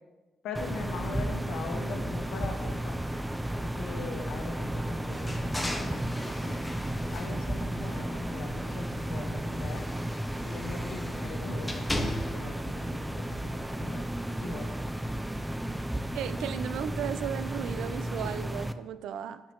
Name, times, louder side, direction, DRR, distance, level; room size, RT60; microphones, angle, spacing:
voice 1, 0.4-3.0 3.6-6.6 7.0-9.8 10.4-14.0 14.4-14.7, left 4 dB, 85° left, 3 dB, 1.1 m, -41 dB
sound 1, 0.5-18.7, right 1 dB, 5° right, 0.4 m, -33 dB
sound 2, 5.1-8.3 8.6-12.6, left 1 dB, 10° left, 0.9 m, -38 dB
voice 2, 16.1-19.4, right 9 dB, 80° right, 13 dB, 0.3 m, -35 dB
9.1 x 5.9 x 2.9 m, 1.2 s
cardioid pair, 90°, 0 cm